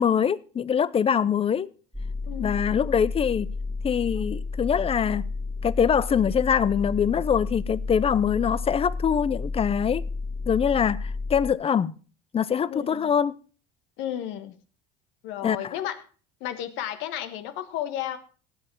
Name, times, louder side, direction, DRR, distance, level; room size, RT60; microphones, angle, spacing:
voice 1, 0.0-1.7 2.4-3.5 3.8-5.3 5.6-10.0 10.5-11.9 12.3-13.3 15.4-15.7, left 7 dB, 30° left, 0.6 m, -23 dB
sound 1, 1.9-11.5, left 3 dB, ahead, 1.8 m, -32 dB
voice 2, 2.2-2.6 12.7-13.1 14.0-14.5 15.2-16.0 16.4-18.2, left 11 dB, 70° left, 1.4 m, -33 dB
17.5 x 7.7 x 4.6 m
supercardioid pair, 90°, 20 cm